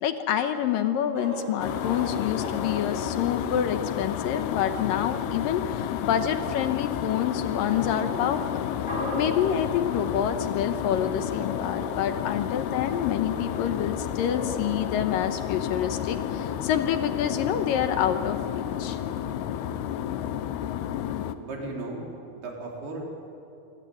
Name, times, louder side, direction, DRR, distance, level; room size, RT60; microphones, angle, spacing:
voice 1, 0.0-8.7 9.1-19.0, left 9 dB, 70° left, 8 dB, 2.5 m, -27 dB
sound 1, 1.1-17.4, left 1 dB, 20° left, 5.3 m, -41 dB
sound 2, 1.6-21.4, left 10 dB, 90° left, 2.9 m, -31 dB
voice 2, 21.4-22.0 22.3-23.0, right 2 dB, 80° right, -1 dB, 5.9 m, -35 dB
26.0 x 21.5 x 9.3 m, 2.8 s
omnidirectional pair, 4.5 m